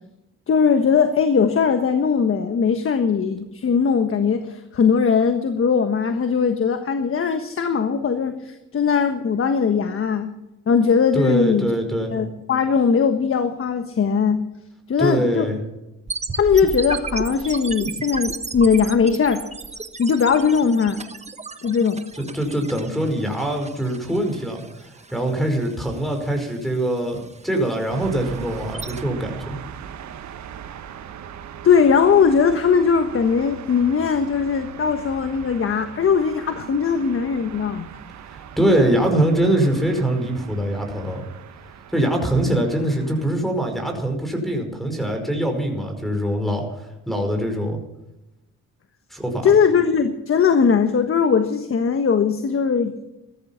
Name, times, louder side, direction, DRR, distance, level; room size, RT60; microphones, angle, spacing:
voice 1, 0.5-10.3 10.7-11.7 12.1-14.5 14.9-15.5 16.3-19.4 20.0-21.0 21.6-22.1 31.6-37.9 49.4-53.0, left 6 dB, 45° left, 8 dB, 1.4 m, -19 dB
voice 2, 11.1-12.1 15.0-15.6 22.2-24.6 25.1-29.6 38.2-41.2 41.9-47.8 49.1-49.5, right 1 dB, ahead, 1 dB, 5.2 m, -23 dB
sound 1, 16.1-29.0, right 4 dB, 20° right, 1.2 m, -34 dB
sound 2, 27.9-43.3, right 8 dB, 65° right, 1.4 m, -40 dB
16.0 x 13.5 x 5.9 m, 0.93 s
cardioid pair, 90°, 30 cm